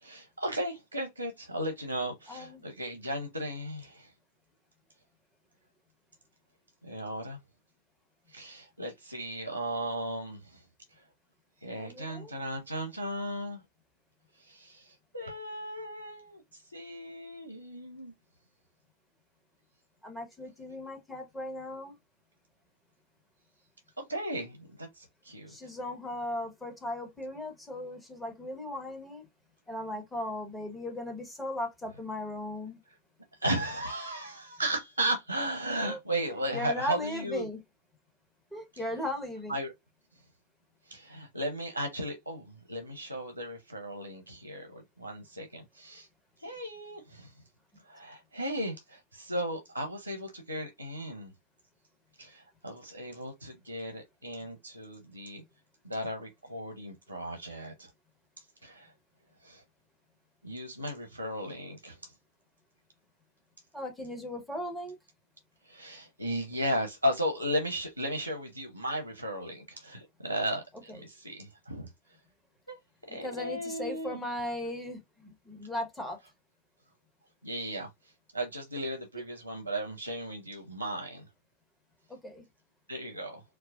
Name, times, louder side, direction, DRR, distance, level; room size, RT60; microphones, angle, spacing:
voice 1, 0.0-4.1 6.8-7.4 8.3-10.6 11.6-13.6 14.3-18.1 24.0-25.6 33.4-37.5 38.7-38.8 39.5-39.7 40.9-46.1 46.4-47.3 47.9-51.3 52.2-55.4 55.8-57.9 58.6-58.9 59.4-59.6 60.4-62.1 65.6-71.9 72.7-72.8 73.1-74.2 77.4-77.9 78.3-81.3 82.9-83.4, equal, 90° left, 0.8 m, -36 dB
voice 2, 2.3-2.6 11.7-12.3 20.0-22.0 25.5-29.3 29.7-32.8 35.8-36.0 36.5-37.6 38.5-39.6 47.7-47.8 63.7-64.9 73.1-76.2 82.1-82.4, left 1 dB, 5° left, 1.3 m, -37 dB
4.6 x 2.1 x 2.5 m
figure-of-eight pair, 90°, 0 cm